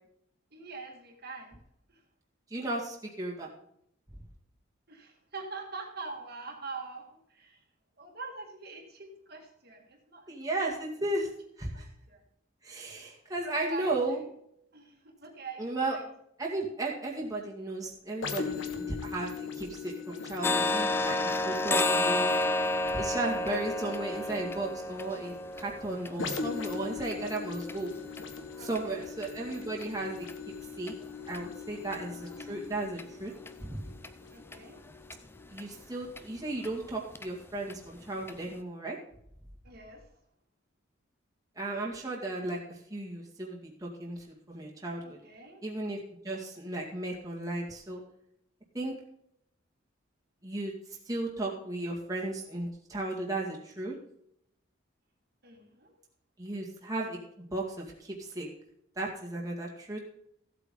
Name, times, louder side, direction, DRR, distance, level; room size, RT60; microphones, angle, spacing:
voice 1, 0.5-1.6 1.9-2.0 4.9-7.6 8.0-10.6 11.7-12.2 13.5-14.2 14.7-16.0 24.0-24.7 28.6-29.1 31.7-32.3 34.3-34.8 39.6-40.0 45.0-45.6 55.4-55.9, right 3 dB, 50° right, 1 dB, 1.9 m, -45 dB
voice 2, 2.5-3.5 10.3-11.3 11.6-11.9 12.6-14.2 15.6-16.0 16.4-22.4 22.9-27.9 28.6-30.3 30.8-30.9 31.3-33.3 33.6-33.8 35.5-39.0 41.6-45.2 45.6-46.0 46.2-48.0 48.7-48.9 50.4-50.7 51.1-53.9 56.4-58.5 59.0-60.0, right 2 dB, 15° right, -2 dB, 1.9 m, -35 dB
sound 1, 18.2-35.7 36.3-36.4, left 5 dB, 65° left, 1.5 m, -41 dB
sound 2, 20.4-28.2 28.7-28.8 29.2-29.4 29.8-29.9 30.3-30.4 30.9-31.0 31.3-31.4 31.9-32.0 32.4-32.5 33.0-33.1 33.5-33.6 34.0-34.1 34.5-34.6 35.1-35.2 35.6-35.7 36.2-36.3 36.6-36.7 37.1-37.3 37.7-37.8 38.3-38.4, left 2 dB, 10° left, 0.4 m, -31 dB
15.0 x 8.2 x 3.7 m, 0.72 s
head